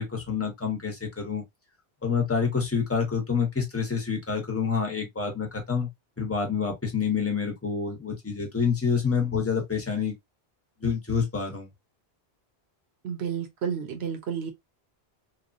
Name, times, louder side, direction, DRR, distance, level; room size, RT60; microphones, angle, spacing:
voice 1, 0.0-1.4 2.0-5.9 6.2-10.1 10.8-11.7, left 6 dB, 15° left, 0.8 m, -27 dB
voice 2, 13.0-14.5, right 7 dB, 75° right, 1.1 m, -31 dB
3.0 x 2.3 x 2.4 m
omnidirectional pair, 1.1 m